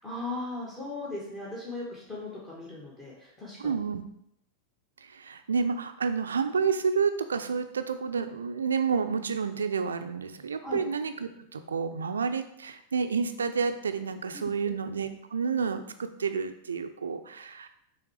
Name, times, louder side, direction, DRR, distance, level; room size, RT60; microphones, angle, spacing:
voice 1, 0.0-3.7 10.6-10.8 14.3-14.5, left 2 dB, 20° left, -6 dB, 1.7 m, -38 dB
voice 2, 3.6-4.0 5.0-17.7, right 5 dB, 70° right, 9 dB, 0.5 m, -30 dB
6.9 x 3.2 x 4.8 m, 0.76 s
figure-of-eight pair, 90°, 0 cm